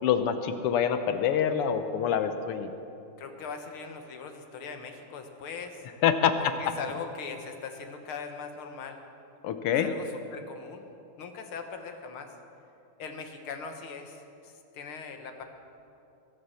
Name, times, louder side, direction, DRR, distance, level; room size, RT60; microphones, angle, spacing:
voice 1, 0.0-2.7 6.0-6.3 9.4-9.9, left 8 dB, 90° left, 9 dB, 1.8 m, -26 dB
voice 2, 3.2-5.9 6.4-9.0 9.8-10.9 11.2-12.3 13.0-15.4, left 5 dB, 75° left, 6 dB, 2.1 m, -40 dB
22.0 x 8.7 x 6.4 m, 2.8 s
omnidirectional pair, 2.4 m